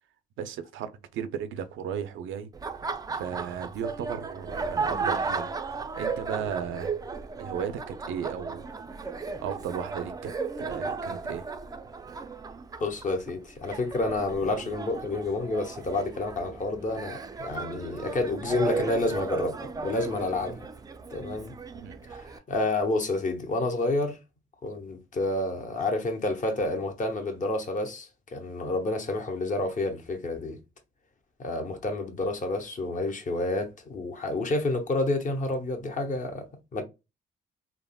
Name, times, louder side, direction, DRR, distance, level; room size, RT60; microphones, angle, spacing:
voice 1, 0.4-2.5 3.1-5.5 6.0-6.9 7.4-8.7 9.4-11.4 21.3-21.4 21.7-22.0, right 8 dB, 80° right, 0.4 m, -35 dB
Laughter, 2.5-22.4, right 4 dB, 20° right, 0.3 m, -35 dB
voice 2, 12.8-19.6 19.8-20.7 21.1-21.5 22.1-24.2 24.6-30.6 31.4-36.5 36.7-36.8, left 2 dB, 40° left, 0.8 m, -29 dB
3.5 x 2.0 x 2.2 m
cardioid pair, 90°, 20 cm